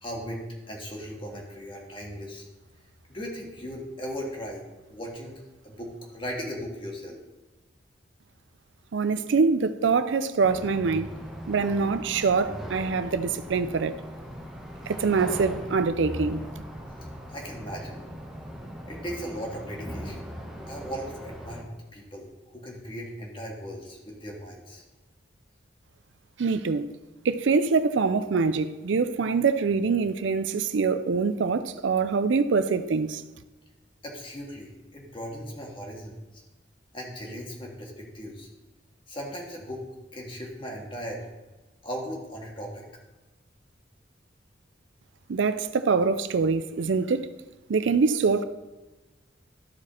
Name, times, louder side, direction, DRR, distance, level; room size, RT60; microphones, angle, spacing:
voice 1, 0.0-2.5 3.1-7.2 17.3-18.0 18.9-20.3 20.7-21.6 21.9-24.8 34.0-36.4 36.9-38.5 39.1-39.8 40.1-41.2 41.8-42.8, equal, 25° left, 1.8 m, -38 dB
voice 2, 8.9-11.1 11.5-13.9 14.9-16.5 26.4-26.9 27.2-33.2 45.3-47.3 47.7-48.4, right 4 dB, 75° right, 0.5 m, -24 dB
sound 1, 10.4-21.6, equal, 5° right, 1.3 m, -39 dB
13.5 x 4.9 x 4.3 m
head